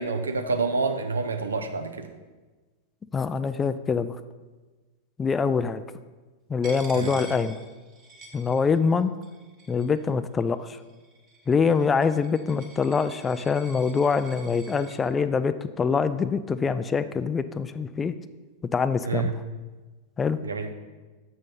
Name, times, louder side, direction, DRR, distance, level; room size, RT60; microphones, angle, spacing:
voice 1, 0.0-2.1 6.9-7.1 19.0-19.3 20.4-20.7, right 4 dB, 75° right, 6 dB, 0.7 m, -28 dB
voice 2, 3.1-4.2 5.2-5.8 6.5-7.6 8.3-9.1 9.7-10.8 11.5-18.1 18.7-19.3 20.2-20.4, left 5 dB, 20° left, 13 dB, 0.3 m, -24 dB
Coin (dropping), 6.6-9.0 9.2-10.0 10.7-15.0, right 2 dB, 35° right, 1.3 m, -47 dB
7.4 x 5.1 x 5.5 m, 1.3 s
figure-of-eight pair, 90°, 0 cm